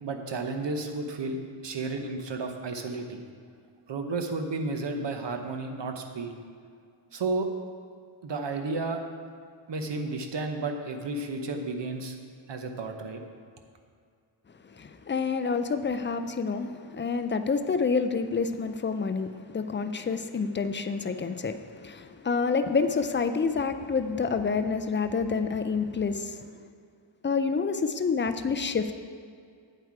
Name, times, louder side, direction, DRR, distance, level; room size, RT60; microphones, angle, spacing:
voice 1, 0.0-3.2 3.9-6.3 7.1-7.5 8.2-9.0 9.7-12.2 12.5-13.2, right 3 dB, 60° right, 5 dB, 1.0 m, -32 dB
voice 2, 15.1-19.3 19.5-26.3 27.2-28.9, left 5 dB, 25° left, 9 dB, 0.4 m, -28 dB
9.3 x 7.9 x 4.7 m, 2.2 s
wide cardioid pair, 155°, 49 cm